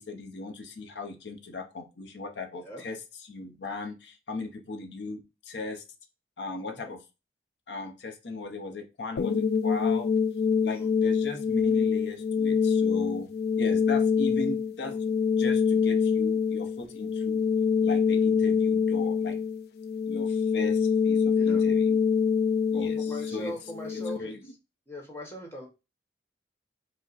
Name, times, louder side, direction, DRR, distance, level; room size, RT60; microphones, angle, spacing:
voice 1, 0.0-5.8 6.4-7.0 7.7-10.1 10.6-13.3 13.6-15.0 15.3-17.4 17.8-19.4 20.1-22.0 22.7-23.5 23.9-24.4, left 3 dB, 85° left, 5 dB, 0.8 m, -38 dB
sound 1, 9.2-24.2, left 6 dB, 60° left, 0.3 m, -25 dB
voice 2, 14.8-15.1 21.3-21.6 22.7-24.3 24.9-25.7, equal, 15° left, 0 dB, 1.2 m, -41 dB
4.8 x 2.2 x 4.0 m, 0.27 s
head